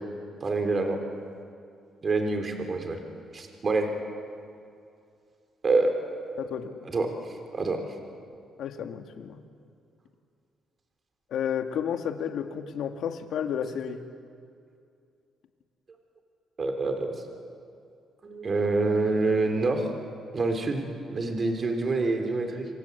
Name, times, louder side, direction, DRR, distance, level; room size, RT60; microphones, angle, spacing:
voice 1, 0.4-1.0 2.0-3.0 3.3-3.9 5.6-6.0 6.8-7.8 16.6-17.2 18.2-19.9 20.3-20.9 21.1-22.7, right 3 dB, 40° right, 5 dB, 3.7 m, -26 dB
voice 2, 6.4-6.9 8.6-9.4 11.3-14.0, left 8 dB, 75° left, 5 dB, 2.0 m, -32 dB
28.0 x 23.5 x 8.4 m, 2.4 s
cardioid pair, 90°, 0 cm